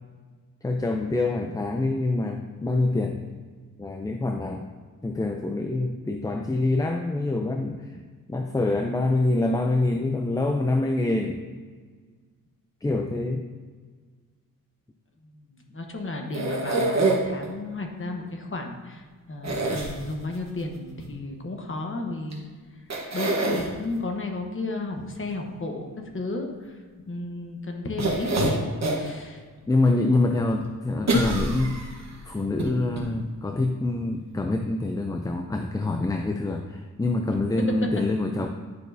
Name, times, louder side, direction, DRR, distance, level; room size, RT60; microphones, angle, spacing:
voice 1, 0.6-3.2 3.8-4.7 5.0-8.0 8.3-11.4 12.8-13.4 29.7-31.8 32.3-38.5, left 2 dB, 10° left, 4 dB, 0.4 m, -25 dB
voice 2, 15.7-22.4 23.1-25.9 26.1-26.7 27.1-29.4, left 2 dB, 35° left, 2 dB, 1.0 m, -33 dB
sound 1, 16.3-17.5 19.4-20.4 22.3-22.4 22.9-23.7 28.0-29.1 29.6-29.7 31.1-32.1 32.6-32.7 33.0-33.1, right 2 dB, 50° right, 1.3 m, -25 dB
10.5 x 6.1 x 2.7 m, 1.5 s
wide cardioid pair, 120°, 35 cm